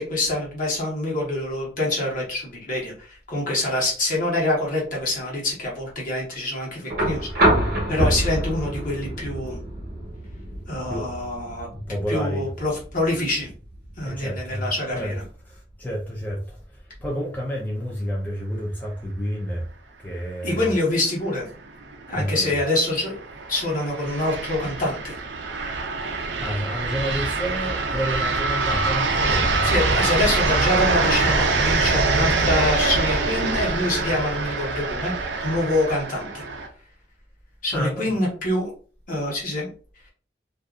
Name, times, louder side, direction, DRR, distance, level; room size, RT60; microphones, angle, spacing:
voice 1, 0.0-7.5 7.9-9.6 10.7-11.7 12.1-13.5 14.0-15.1 20.4-21.5 22.1-23.2 23.5-25.2 29.6-36.4 37.6-38.7 39.1-39.7, left 1 dB, 50° left, -3 dB, 1.1 m, -25 dB
sound 1, 6.9-14.9 16.3-16.4, right 1 dB, 60° right, 1.0 m, -27 dB
voice 2, 11.7-12.5 14.0-15.1 15.4-19.7 20.0-20.7 22.1-22.5 26.4-29.7 37.7-38.1, equal, 10° left, -4 dB, 0.5 m, -30 dB
sound 2, 21.8-36.7, right 3 dB, 85° right, 0.5 m, -24 dB
2.6 x 2.4 x 2.4 m, 0.40 s
head